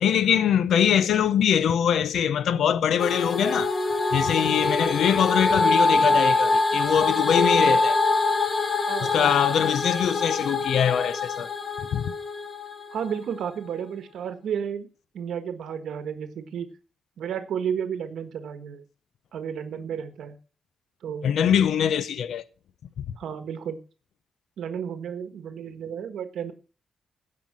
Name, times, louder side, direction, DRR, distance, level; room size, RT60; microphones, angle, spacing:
voice 1, 0.0-3.7 4.1-8.0 9.1-11.5 11.9-12.1 21.2-22.4, left 8 dB, 75° left, 0.6 m, -23 dB
sound 1, 3.0-13.2, left 3 dB, 30° left, 1.4 m, -24 dB
voice 2, 8.8-9.3 12.9-14.9 15.1-16.7 17.2-18.8 19.3-20.4 21.0-21.3 23.2-23.8 24.6-26.5, right 8 dB, 75° right, 1.4 m, -32 dB
16.5 x 5.8 x 7.5 m
wide cardioid pair, 145°, 0 cm